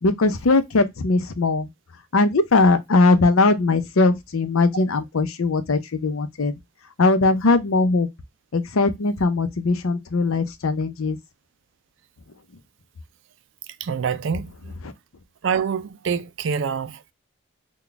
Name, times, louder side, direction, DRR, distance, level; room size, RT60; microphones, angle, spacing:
voice 1, 0.0-1.7 2.1-6.5 7.0-8.1 8.5-11.2, left 3 dB, 80° left, 0.6 m, -20 dB
voice 2, 13.8-14.7 15.4-17.1, right 6 dB, 60° right, 0.4 m, -26 dB
3.9 x 2.3 x 3.4 m
head